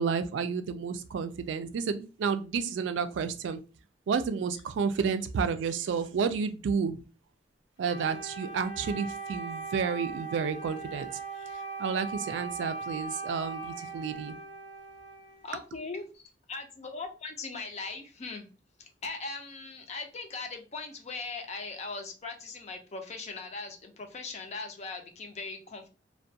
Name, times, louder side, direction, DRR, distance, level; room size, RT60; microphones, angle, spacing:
voice 1, 0.0-3.6 4.1-7.0 7.8-11.1 11.8-14.4, right 6 dB, 90° right, 0.3 m, -31 dB
Wind instrument woodwind instrument, 7.8-15.5, right 4 dB, 70° left, 0.7 m, -40 dB
voice 2, 15.4-16.2 16.5-18.5 18.8-25.9, left 3 dB, 40° left, 0.5 m, -39 dB
2.3 x 2.2 x 2.6 m
head